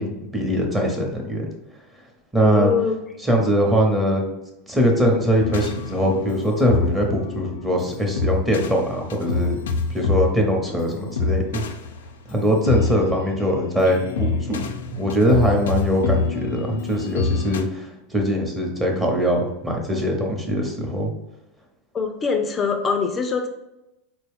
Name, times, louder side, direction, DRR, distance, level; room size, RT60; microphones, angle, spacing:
voice 1, 0.0-1.5 2.3-2.7 3.2-4.3 4.7-9.6 9.9-11.6 12.3-21.1, equal, 10° right, 0 dB, 0.9 m, -22 dB
voice 2, 2.4-3.0 12.7-12.8 21.9-23.5, left 5 dB, 25° left, 5 dB, 0.4 m, -23 dB
sound 1, 5.4-17.6, left 4 dB, 90° left, 0.4 m, -27 dB
3.9 x 2.2 x 3.5 m, 0.93 s
supercardioid pair, 120°, 0 cm